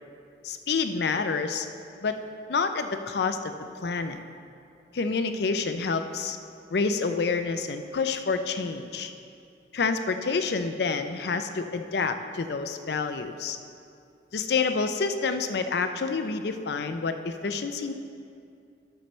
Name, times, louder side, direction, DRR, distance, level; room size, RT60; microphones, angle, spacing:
voice 1, 0.4-1.7 2.0-2.2 2.5-3.5 3.8-4.2 4.9-6.4 6.7-9.1 9.7-13.6 14.3-17.9, left 4 dB, 60° left, 8 dB, 0.5 m, -28 dB
12.5 x 6.4 x 3.2 m, 2.5 s
head